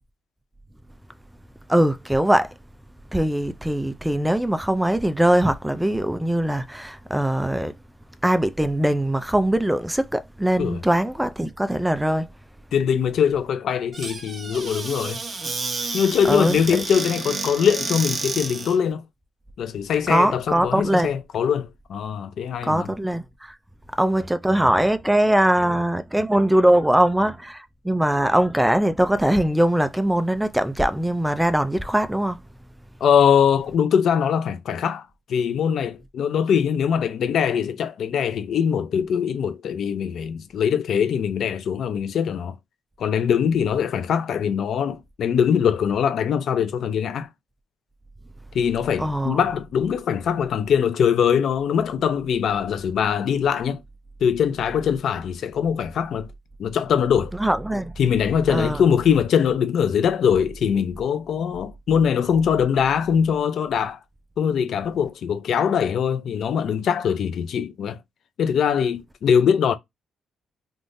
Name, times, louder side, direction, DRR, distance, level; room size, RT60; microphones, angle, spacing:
voice 1, 1.7-2.5 3.1-7.7 8.2-12.3 16.3-16.6 20.1-21.1 22.6-23.5 24.0-32.4 49.0-49.4 57.4-57.9 58.5-58.8, right 1 dB, 5° right, 0.3 m, -21 dB
voice 2, 12.7-15.2 15.9-19.0 19.6-22.9 33.0-42.6 43.0-47.3 48.5-53.8 54.2-56.3 56.6-57.3 58.0-64.0 64.4-68.0 68.4-69.7, left 7 dB, 65° left, 0.5 m, -22 dB
Squeak / Cupboard open or close, 13.9-18.8, right 3 dB, 35° right, 0.8 m, -30 dB
3.5 x 2.5 x 2.6 m
cardioid pair, 90°, 0 cm